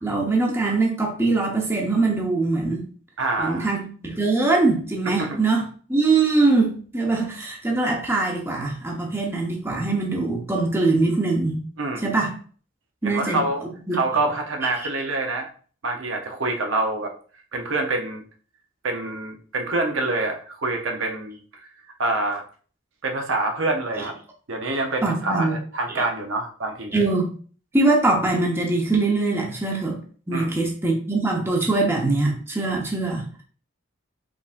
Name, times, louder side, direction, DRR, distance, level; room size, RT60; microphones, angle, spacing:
voice 1, 0.0-2.8 3.4-5.6 5.9-11.6 12.0-12.3 13.0-13.4 13.9-14.0 25.0-25.6 26.9-27.3 27.7-30.0 30.3-33.4, right 3 dB, 10° right, -1 dB, 0.8 m, -22 dB
voice 2, 3.2-3.7 5.2-5.4 11.8-12.0 13.0-13.6 13.9-15.5 15.8-17.1 17.5-18.2 18.8-21.4 22.0-22.4 23.0-24.1 24.5-26.9 30.3-30.6, right 2 dB, 70° right, 3 dB, 0.8 m, -26 dB
5.0 x 3.4 x 2.5 m, 0.42 s
head